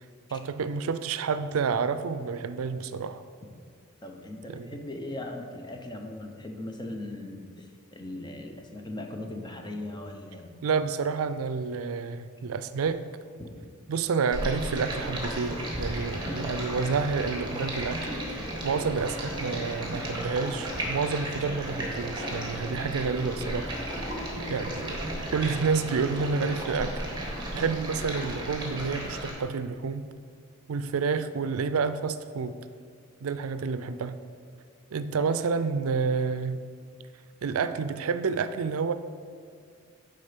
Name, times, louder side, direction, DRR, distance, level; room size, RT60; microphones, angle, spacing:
voice 1, 0.3-3.2 4.5-4.8 10.6-13.1 13.9-18.4 18.6-23.7 24.5-25.0 25.3-30.1 30.7-32.6 33.2-34.2 34.9-36.6 37.4-38.9, right 5 dB, 80° right, 12 dB, 0.4 m, -29 dB
voice 2, 4.0-10.6 13.4-13.5 35.2-35.3, left 1 dB, 20° left, 3 dB, 0.7 m, -39 dB
Stream, 14.3-29.3, right 1 dB, 20° right, 1.4 m, -34 dB
9.8 x 3.9 x 5.1 m, 2.2 s
head